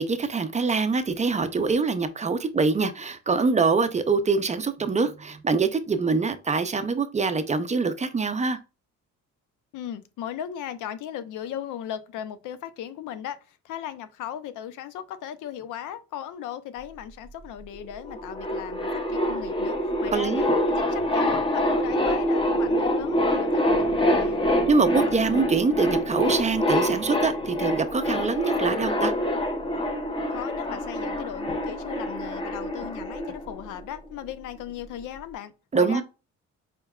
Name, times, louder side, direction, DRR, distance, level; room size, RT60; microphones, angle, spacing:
voice 1, 0.0-8.6 20.1-20.5 24.7-29.1 35.7-36.0, right 4 dB, 25° right, 0.4 m, -24 dB
voice 2, 9.7-20.4 20.8-24.4 30.3-36.0, left 10 dB, 85° left, 0.6 m, -37 dB
sound 1, 17.7-17.8 18.0-33.9, left 1 dB, 15° left, 0.8 m, -26 dB
4.4 x 3.4 x 2.3 m
cardioid pair, 90°, 30 cm